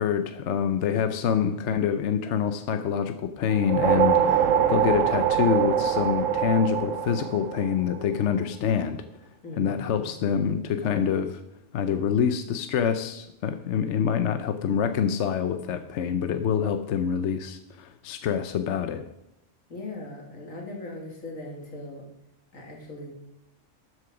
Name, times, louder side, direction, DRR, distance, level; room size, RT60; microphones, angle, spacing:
voice 1, 0.0-9.0 9.6-11.4 11.7-19.0, left 8 dB, 65° left, 9 dB, 1.0 m, -26 dB
sound 1, 3.5-8.1, right 8 dB, 75° right, 1.1 m, -24 dB
voice 2, 9.4-10.1 19.7-22.0 22.5-23.1, left 2 dB, 85° left, 0 dB, 2.9 m, -39 dB
12.5 x 7.7 x 4.9 m, 0.84 s
omnidirectional pair, 1.4 m